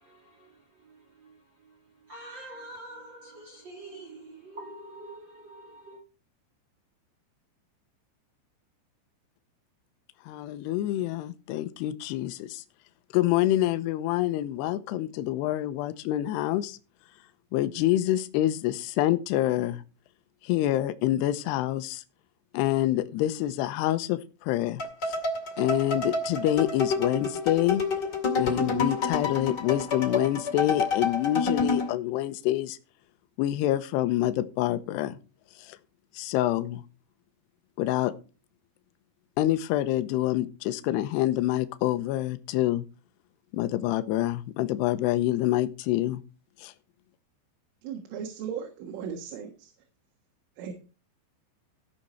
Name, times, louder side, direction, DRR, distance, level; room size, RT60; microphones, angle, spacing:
voice 1, 0.0-6.0, right 2 dB, 70° right, 1.0 m, -46 dB
voice 2, 10.2-12.6 13.1-16.8 17.5-19.8 20.4-22.0 22.5-25.2 25.6-27.8 28.4-32.8 33.4-35.2 35.6-35.8 36.1-36.8 37.8-38.1 39.4-42.8 43.5-46.2 46.6-46.7, left 14 dB, 80° left, 2.7 m, -27 dB
sound 1, 24.8-31.9, left 4 dB, 40° left, 1.5 m, -28 dB
voice 3, 47.8-49.7 50.6-50.8, right 7 dB, 90° right, 4.0 m, -37 dB
16.0 x 6.6 x 4.3 m
omnidirectional pair, 5.5 m